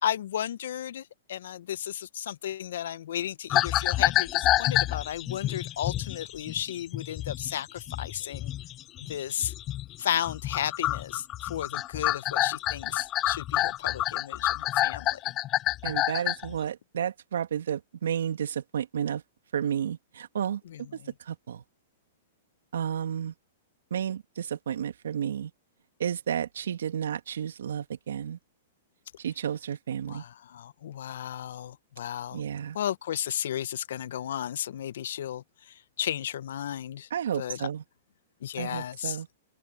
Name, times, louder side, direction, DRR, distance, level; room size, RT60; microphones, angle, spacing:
voice 1, 0.0-8.5 9.1-9.5 10.0-15.3 20.7-21.1 30.1-32.4 32.7-35.4 36.0-37.1 37.4-37.7 38.4-39.2, left 10 dB, 70° left, 1.0 m, -34 dB
sound 1, 3.5-10.0 10.2-16.5, left 14 dB, 30° left, 0.3 m, -28 dB
voice 2, 15.8-19.2 19.5-20.6 21.3-21.6 22.7-23.3 23.9-25.5 26.0-28.4 29.2-30.2 32.3-32.8 37.1-37.8 38.6-39.3, right 9 dB, 75° right, 2.5 m, -31 dB
open air
hypercardioid pair, 115°, 0 cm